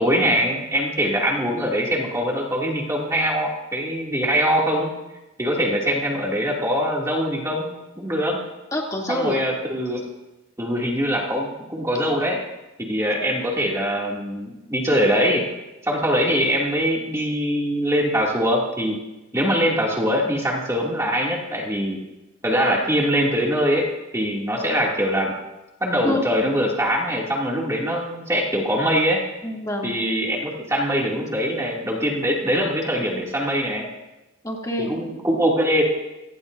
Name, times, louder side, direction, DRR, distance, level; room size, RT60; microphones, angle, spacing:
voice 1, 0.0-4.9 5.4-8.4 9.1-10.0 10.6-12.4 12.8-15.4 15.8-19.0 19.3-22.0 22.4-23.9 24.1-25.3 25.8-29.2 29.8-33.9 34.8-35.8, equal, 15° right, -2 dB, 2.5 m, -22 dB
voice 2, 8.7-9.4 26.0-26.3 29.4-30.0 34.4-34.9, left 1 dB, 15° left, -2 dB, 2.7 m, -26 dB
28.5 x 18.0 x 2.7 m, 1.0 s
head